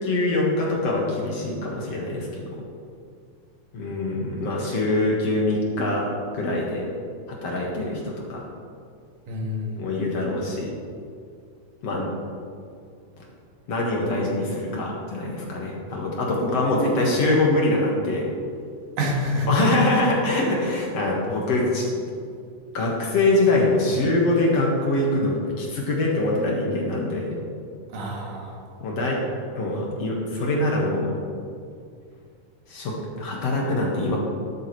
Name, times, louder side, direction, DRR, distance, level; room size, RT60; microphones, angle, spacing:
voice 1, 0.0-2.5 3.7-6.1 6.3-6.9 7.3-8.4 9.8-10.7 11.8-12.1 13.7-18.3 19.5-21.9 22.7-27.4 28.8-29.2 29.6-31.1 32.7-34.2, left 2 dB, 55° left, -2 dB, 2.5 m, -24 dB
voice 2, 9.3-9.9 19.0-19.7 27.9-28.6, left 1 dB, 80° right, -2 dB, 3.3 m, -27 dB
12.5 x 11.5 x 3.2 m, 2.3 s
omnidirectional pair, 3.6 m